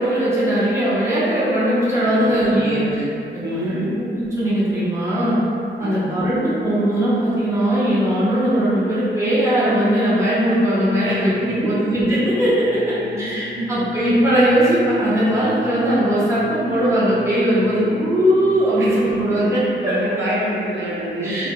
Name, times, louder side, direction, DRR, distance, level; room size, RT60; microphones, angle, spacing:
voice 1, 0.0-3.0 3.3-3.8 4.2-5.4 5.8-19.9 21.2-21.5, equal, 15° right, -11 dB, 0.9 m, -19 dB
voice 2, 2.1-3.0 3.4-4.0 5.8-6.1 11.0-11.7 12.7-13.7 18.8-19.0 19.8-21.5, right 1 dB, 70° right, -6 dB, 0.5 m, -28 dB
sound 1, 11.0-18.9, left 2 dB, 60° left, 0.5 m, -37 dB
2.8 x 2.7 x 2.7 m, 2.7 s
wide cardioid pair, 115°, 20 cm